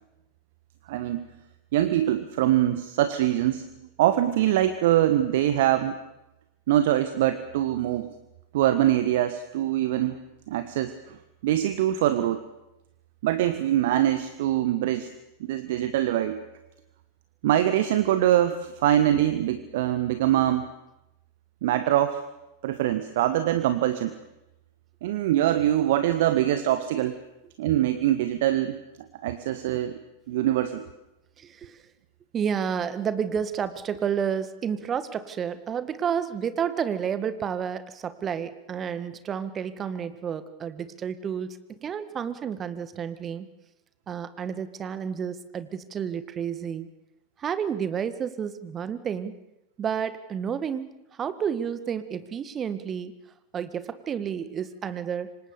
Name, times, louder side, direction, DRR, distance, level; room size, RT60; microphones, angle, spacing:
voice 1, 0.9-1.2 1.7-3.6 4.0-5.9 6.7-8.1 8.5-11.2 11.4-12.4 13.2-15.1 15.4-16.4 17.4-20.6 21.6-22.2 22.6-24.1 25.0-27.2 27.6-28.8 29.2-30.0 30.3-30.9, right 12 dB, 55° right, 11 dB, 1.4 m, -23 dB
voice 2, 31.4-31.8 32.3-43.5 44.1-46.9 47.4-49.4 49.8-50.9 51.2-53.1 53.5-55.3, right 7 dB, 25° right, 13 dB, 1.8 m, -30 dB
27.5 x 25.5 x 7.0 m, 0.93 s
figure-of-eight pair, 90°, 0 cm